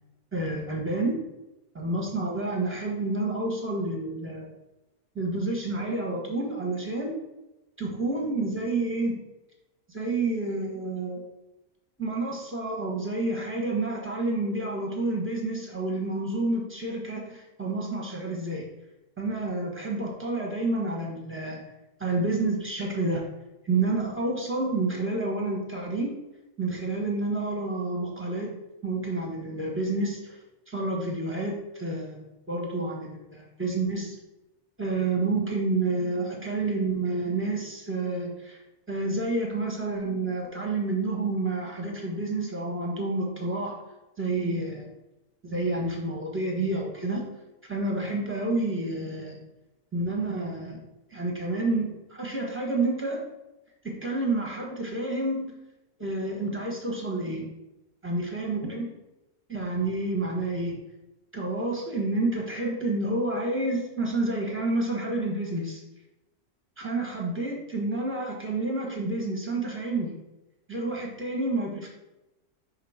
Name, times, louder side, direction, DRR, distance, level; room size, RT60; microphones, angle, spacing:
voice 1, 0.3-1.2 1.7-4.5 5.1-7.1 7.8-9.2 9.9-11.2 12.0-18.7 19.2-21.6 22.0-23.2 23.6-26.1 26.6-28.6 28.8-30.4 30.7-34.1 34.8-38.6 38.9-43.7 44.2-44.9 45.4-47.2 47.7-49.4 49.9-50.8 51.1-53.3 53.8-55.4 56.0-57.5 58.0-58.9 59.5-60.8 61.3-65.8 66.8-70.1 70.7-71.9, right 2 dB, 10° right, -1 dB, 1.1 m, -29 dB
5.7 x 3.6 x 4.9 m, 0.99 s
omnidirectional pair, 1.5 m